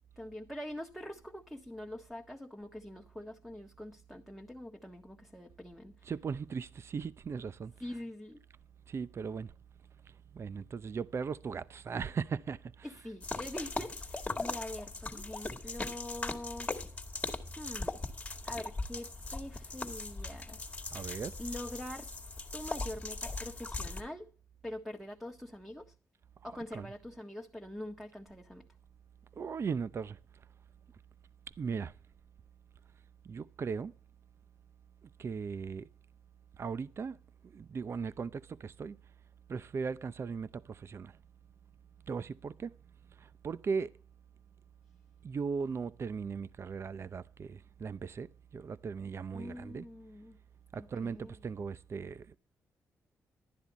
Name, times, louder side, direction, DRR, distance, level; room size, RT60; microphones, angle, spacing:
voice 1, 0.2-6.1 7.8-8.4 12.8-16.7 17.6-18.0 18.4-20.7 21.4-22.1 22.5-24.3 24.6-25.9 26.4-28.7 49.3-50.4 50.7-51.4, left 1 dB, ahead, 1.6 m, -44 dB
voice 2, 6.0-7.7 8.9-9.5 10.3-12.9 20.9-21.3 26.7-26.9 29.4-30.2 31.6-31.9 33.2-33.9 35.2-35.9 36.6-37.2 37.5-39.0 39.5-41.1 42.1-42.7 43.2-43.9 45.2-49.8 50.7-52.4, right 5 dB, 45° right, 0.6 m, -38 dB
sound 1, 13.2-24.0, left 3 dB, 20° left, 2.0 m, -39 dB
12.0 x 10.5 x 4.2 m
cardioid pair, 85°, 6 cm